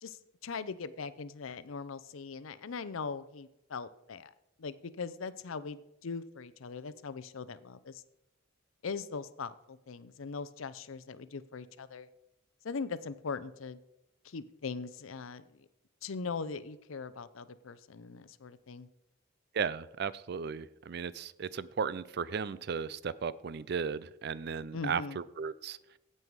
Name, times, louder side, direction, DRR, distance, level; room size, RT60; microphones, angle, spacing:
voice 1, 0.0-4.3 4.6-8.0 8.8-12.1 12.6-13.8 14.2-15.7 16.0-18.9 24.7-25.2, left 5 dB, 85° left, 14 dB, 0.6 m, -40 dB
voice 2, 19.5-25.8, right 6 dB, 55° right, 18 dB, 0.4 m, -35 dB
16.0 x 5.5 x 4.7 m, 0.87 s
head